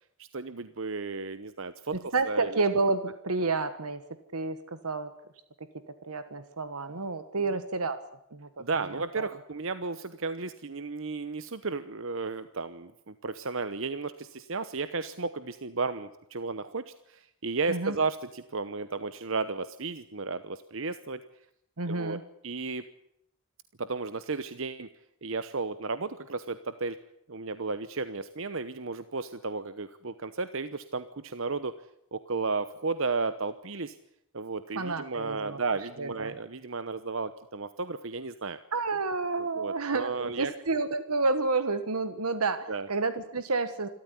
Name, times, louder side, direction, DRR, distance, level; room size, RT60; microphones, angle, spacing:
voice 1, 0.2-2.6 7.4-7.6 8.6-21.2 21.9-22.2 22.4-22.8 23.8-24.9 25.2-27.0 27.3-31.7 32.1-34.0 34.3-38.6 39.4-40.5 42.7-42.9, right 4 dB, 60° right, 12 dB, 1.0 m, -34 dB
voice 2, 2.1-4.0 4.3-5.1 6.0-8.0 8.3-8.5 9.1-9.3 17.7-18.0 21.8-22.2 34.7-35.6 36.0-36.3 38.7-43.9, right 3 dB, 90° right, 11 dB, 1.5 m, -29 dB
27.5 x 13.5 x 9.8 m, 0.78 s
head